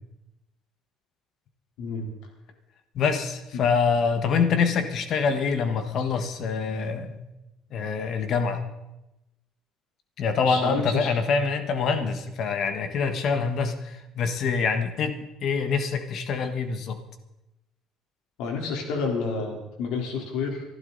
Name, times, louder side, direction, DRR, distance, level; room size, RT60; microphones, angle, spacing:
voice 1, 2.9-7.2 7.7-8.6 10.2-17.0, left 5 dB, 45° left, 8 dB, 1.4 m, -25 dB
voice 2, 10.4-11.1 18.4-20.6, left 4 dB, 85° left, 1 dB, 3.7 m, -29 dB
23.0 x 12.0 x 4.0 m, 0.93 s
cardioid pair, 175°, 0 cm